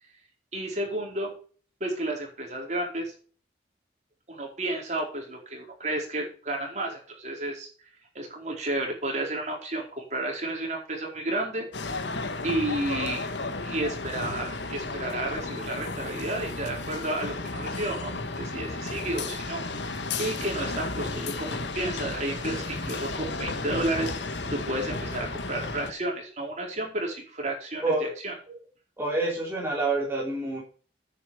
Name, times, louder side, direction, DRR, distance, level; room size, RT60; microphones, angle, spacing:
voice 1, 0.5-1.3 1.8-3.1 4.3-7.7 8.1-11.7 12.4-13.3 13.6-28.6, right 1 dB, 40° right, 0 dB, 4.5 m, -32 dB
sound 1, 11.7-25.9, left 3 dB, 85° left, 1.4 m, -33 dB
voice 2, 29.0-30.6, right 2 dB, 15° right, -4 dB, 3.1 m, -27 dB
9.9 x 8.5 x 5.0 m, 0.41 s
head